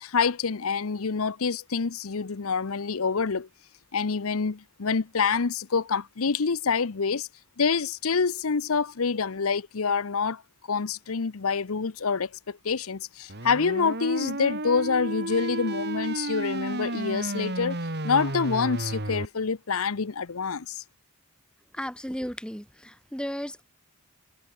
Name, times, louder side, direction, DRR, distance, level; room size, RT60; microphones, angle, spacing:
voice 1, 0.0-3.5 3.9-7.3 7.6-10.4 10.7-17.8 18.0-20.8, left 5 dB, 65° left, 0.8 m, -27 dB
sound 1, 13.3-19.3, right 1 dB, 50° right, 3.3 m, -32 dB
voice 2, 21.7-23.6, equal, 5° left, 3.9 m, -34 dB
head